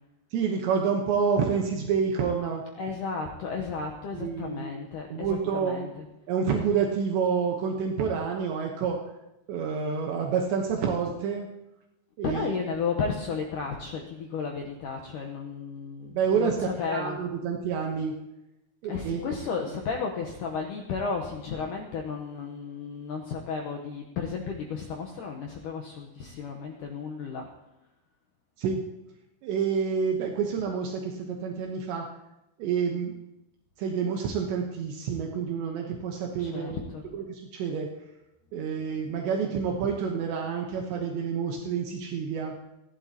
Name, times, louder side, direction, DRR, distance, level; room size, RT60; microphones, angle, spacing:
voice 1, 0.3-2.6 4.1-4.7 5.1-5.9 6.3-9.0 9.5-11.5 12.2-12.5 16.1-18.2 18.8-19.5 28.6-28.8 29.4-32.1 32.6-33.1 33.8-36.8 37.1-37.9 38.5-42.5, right 6 dB, 75° right, 1 dB, 3.2 m, -28 dB
voice 2, 2.8-6.1 12.2-17.2 18.9-27.5 36.4-37.1, left 5 dB, 90° left, 1 dB, 1.8 m, -33 dB
29.0 x 11.5 x 2.9 m, 0.92 s
omnidirectional pair, 5.3 m